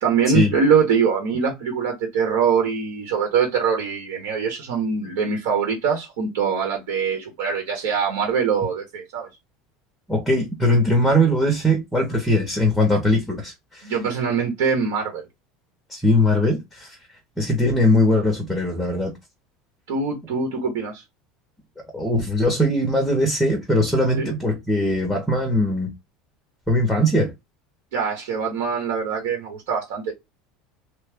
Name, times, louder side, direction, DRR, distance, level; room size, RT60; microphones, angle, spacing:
voice 1, 0.0-9.3 13.8-15.2 19.9-21.0 24.2-24.3 27.9-30.1, right 6 dB, 85° right, 1.2 m, -23 dB
voice 2, 10.1-13.9 15.9-17.0 17.4-19.1 21.9-25.9 26.7-27.3, left 1 dB, ahead, 0.7 m, -20 dB
3.1 x 2.1 x 3.4 m
cardioid pair, 175°, 0 cm